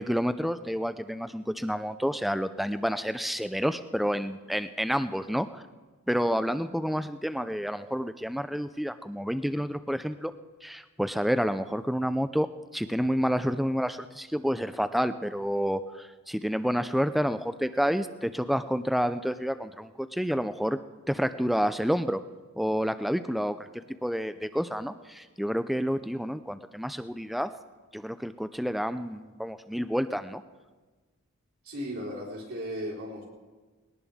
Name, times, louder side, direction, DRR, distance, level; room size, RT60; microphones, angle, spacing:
voice 1, 0.0-5.6 6.1-10.3 10.6-12.5 12.7-20.8 21.1-22.2 22.6-27.5 27.9-30.4, equal, ahead, 11 dB, 0.4 m, -29 dB
voice 2, 31.6-33.3, equal, 70° right, -6 dB, 4.2 m, -36 dB
20.5 x 18.0 x 3.5 m, 1.3 s
head